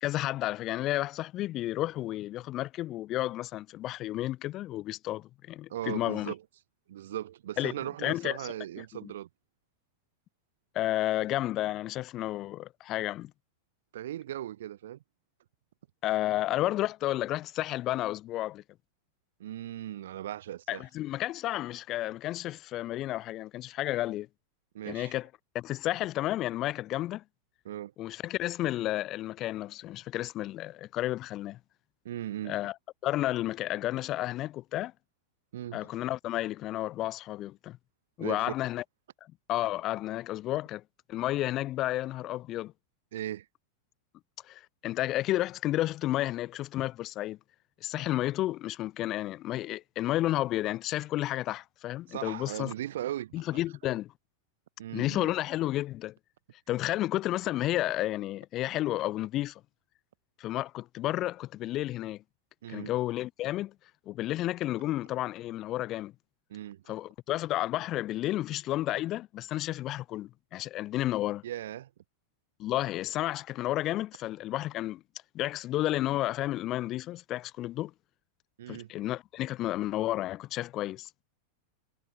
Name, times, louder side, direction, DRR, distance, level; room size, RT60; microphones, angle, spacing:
voice 1, 0.0-6.3 7.6-7.7 8.0-9.1 10.7-13.3 16.0-18.6 20.7-24.3 24.9-25.3 25.5-27.2 28.0-31.6 32.4-32.7 33.0-34.9 35.7-37.8 38.2-38.8 39.5-40.8 41.1-42.7 44.5-47.4 47.8-52.7 53.3-54.1 54.9-56.1 56.7-59.6 60.4-62.2 62.7-63.7 64.1-66.1 66.9-71.4 72.6-75.0 75.3-77.9 78.7-81.2, left 15 dB, 35° left, 0.7 m, -32 dB
voice 2, 5.7-6.4 6.9-9.3 13.9-15.0 19.4-20.8 24.7-25.2 27.6-27.9 32.0-32.6 35.5-35.9 38.2-38.5 43.1-43.5 52.1-53.3 54.8-55.3 62.6-62.9 66.5-66.8 71.4-71.9 78.6-78.9, right 12 dB, 60° right, 4.0 m, -38 dB
figure-of-eight pair, 90°, 0 cm